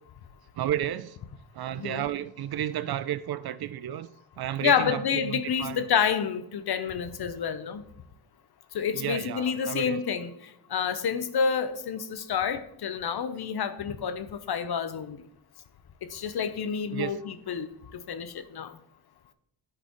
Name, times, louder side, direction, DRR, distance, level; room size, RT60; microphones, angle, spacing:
voice 1, 0.6-1.2 1.5-4.1 4.4-5.9 8.9-10.0 16.9-17.2, right 11 dB, 50° right, 0.5 m, -32 dB
voice 2, 1.7-2.1 4.6-7.8 8.7-10.3 10.7-15.2 16.1-17.7 18.1-18.7, left 7 dB, 50° left, 0.8 m, -28 dB
10.0 x 5.0 x 3.1 m
cardioid pair, 65°, 49 cm